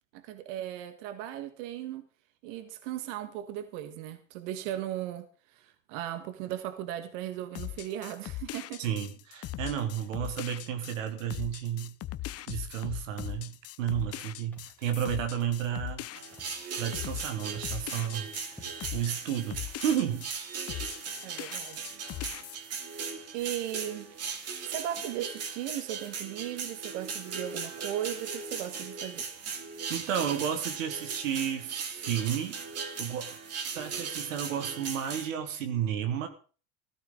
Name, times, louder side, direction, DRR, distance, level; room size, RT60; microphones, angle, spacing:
voice 1, 0.1-2.1 2.4-8.8 21.2-22.0 23.3-24.1 24.6-29.3, right 12 dB, 70° right, 1.7 m, -37 dB
sound 1, 7.6-20.4 20.7-22.6, left 14 dB, 40° left, 0.7 m, -40 dB
voice 2, 8.8-11.9 12.5-16.1 16.8-18.3 18.9-20.3 29.9-32.6 33.0-33.4 33.8-36.3, right 9 dB, 85° right, 1.9 m, -32 dB
Walk footsteps, 13.9-14.2 14.5-14.8 15.1-15.4 15.7-16.0 16.3-17.2 17.5-17.9 18.2-18.3 18.5-19.0 19.6-19.7 20.0-20.3, left 1 dB, 5° left, 2.9 m, -55 dB
sound 2, 16.1-35.3, right 5 dB, 40° right, 2.5 m, -38 dB
15.5 x 13.0 x 3.9 m
hypercardioid pair, 90°, 38 cm